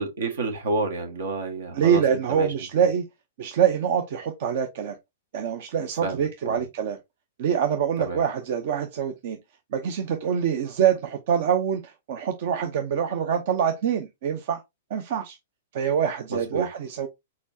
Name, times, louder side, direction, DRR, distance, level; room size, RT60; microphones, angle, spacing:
voice 1, 0.0-2.8 6.0-6.6 8.0-8.2 16.3-16.7, right 3 dB, 75° right, 1.5 m, -30 dB
voice 2, 1.7-3.0 3.4-5.0 5.3-7.0 7.4-9.4 9.7-14.6 14.9-15.4 15.7-17.1, right 8 dB, 55° right, 0.7 m, -25 dB
4.3 x 4.3 x 2.7 m
hypercardioid pair, 120°, 0 cm